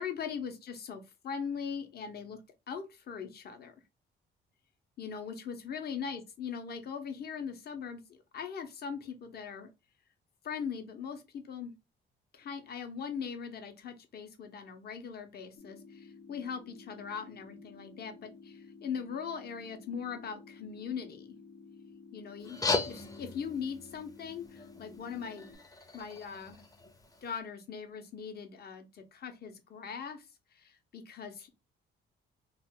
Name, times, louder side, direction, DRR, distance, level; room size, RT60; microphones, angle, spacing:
voice 1, 0.0-2.4 2.7-3.7 5.0-9.7 10.4-11.7 12.3-21.3 22.1-22.6 22.8-25.5 25.9-26.6 27.2-30.3 30.5-31.5, left 6 dB, 50° left, 0.7 m, -40 dB
sound 1, 15.6-25.6, left 4 dB, 75° left, 0.9 m, -53 dB
sound 2, 22.4-27.4, left 3 dB, 20° left, 0.5 m, -38 dB
2.4 x 2.2 x 3.5 m
cardioid pair, 90°, 20 cm